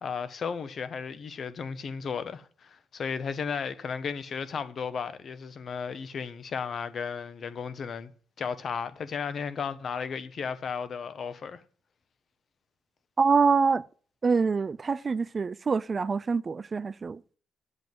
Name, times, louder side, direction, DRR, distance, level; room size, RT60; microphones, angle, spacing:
voice 1, 0.0-8.1 8.4-11.6, left 6 dB, 50° left, 1.2 m, -34 dB
voice 2, 13.2-13.8 14.2-17.2, right 5 dB, 35° right, 0.4 m, -25 dB
8.3 x 7.6 x 7.9 m
cardioid pair, 90°, 0 cm